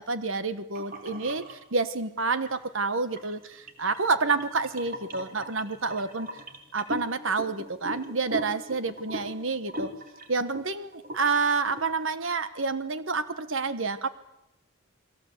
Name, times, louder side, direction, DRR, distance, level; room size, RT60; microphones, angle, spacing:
voice 1, 0.0-3.4 3.8-6.3 6.7-9.9 10.3-14.1, right 4 dB, 60° right, 11 dB, 1.3 m, -28 dB
sound 1, 0.8-1.6 2.2-2.6 3.1-10.6 10.9-11.3 11.7-11.9, equal, 40° right, 3.5 m, -39 dB
30.0 x 22.0 x 8.0 m, 0.85 s
head